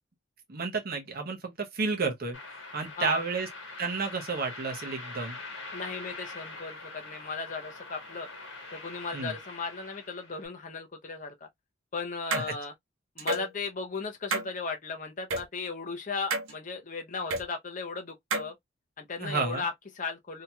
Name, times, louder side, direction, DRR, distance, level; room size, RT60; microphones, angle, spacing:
voice 1, 0.5-2.4 2.7-3.5 3.8-5.4 9.1-9.3 12.3-12.4 19.2-19.6, right 4 dB, 45° right, 0.8 m, -31 dB
sound 1, 2.3-10.4, left 3 dB, 60° left, 1.5 m, -44 dB
voice 2, 5.7-8.3 8.7-11.5 11.9-12.7 13.2-18.5 19.0-20.4, left 4 dB, 40° left, 0.7 m, -36 dB
sound 2, 12.3-12.5 13.2-13.5 14.3-14.5 15.3-15.4 16.3-16.5 17.3-17.4 18.3-18.5, right 3 dB, 80° right, 0.6 m, -29 dB
2.9 x 2.8 x 2.2 m
head